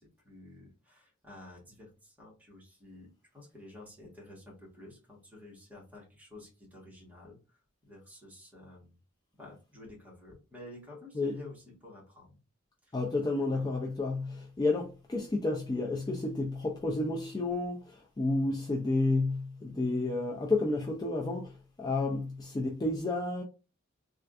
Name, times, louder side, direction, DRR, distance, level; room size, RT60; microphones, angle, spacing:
voice 1, 0.0-8.9 9.4-12.4 12.8-13.0 13.3-13.7, left 2 dB, 10° right, 1.3 m, -51 dB
voice 2, 12.9-23.4, left 2 dB, 20° left, 0.4 m, -31 dB
3.4 x 2.4 x 2.4 m
head